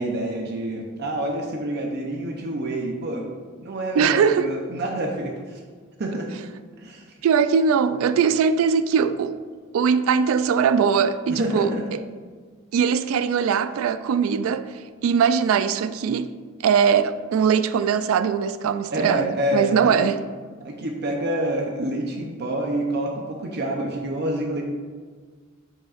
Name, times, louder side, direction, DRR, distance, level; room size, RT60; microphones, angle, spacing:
voice 1, 0.0-3.3 3.6-5.6 6.0-6.3 6.8-7.1 11.3-11.9 18.9-20.1 20.6-24.6, right 1 dB, 55° right, 0.6 m, -27 dB
voice 2, 4.0-4.5 7.2-9.4 9.7-12.0 12.7-14.7 15.0-16.3 16.6-20.2, right 6 dB, 90° right, 0.3 m, -21 dB
7.5 x 5.7 x 2.4 m
head